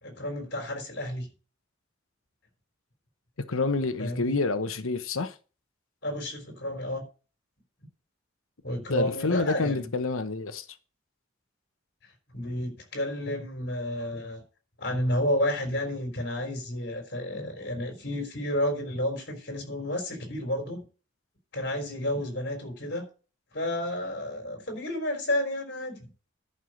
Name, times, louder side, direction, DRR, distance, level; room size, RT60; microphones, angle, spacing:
voice 1, 0.0-1.3 4.0-4.4 6.0-7.0 8.6-9.9 12.3-14.4 14.8-20.8 21.5-23.1 23.5-26.1, left 1 dB, 50° left, 4.0 m, -31 dB
voice 2, 3.5-5.4 8.9-10.7, left 3 dB, 90° left, 1.0 m, -28 dB
11.0 x 5.6 x 6.4 m
head